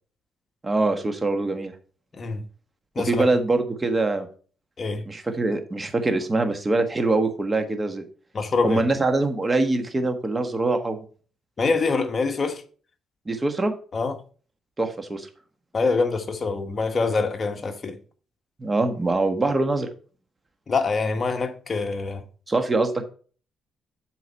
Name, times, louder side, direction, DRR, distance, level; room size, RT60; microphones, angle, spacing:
voice 1, 0.6-1.7 3.0-4.3 5.1-8.0 8.6-11.0 13.3-13.7 14.8-15.3 18.6-19.9 22.5-23.0, right 2 dB, 25° right, 1.4 m, -23 dB
voice 2, 2.9-3.3 4.8-5.0 8.3-8.8 11.6-12.6 13.9-14.2 15.7-18.0 20.7-22.2, left 4 dB, 40° left, 1.2 m, -25 dB
8.0 x 4.6 x 5.4 m
cardioid pair, 90°, 0 cm